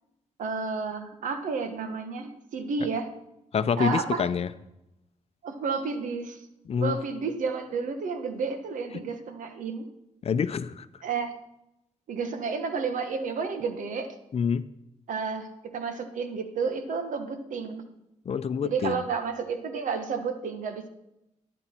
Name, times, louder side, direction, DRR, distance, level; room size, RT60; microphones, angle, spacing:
voice 1, 0.4-3.1 3.8-4.2 5.4-6.5 6.7-9.9 11.0-11.3 12.1-14.1 15.1-17.8 18.6-20.9, right 5 dB, 85° right, 7 dB, 1.3 m, -31 dB
voice 2, 3.5-4.5 6.7-7.0 10.2-10.9 14.3-14.7 18.3-19.0, left 6 dB, 50° left, 13 dB, 0.6 m, -26 dB
14.0 x 11.0 x 4.5 m, 0.88 s
cardioid pair, 115°, 13 cm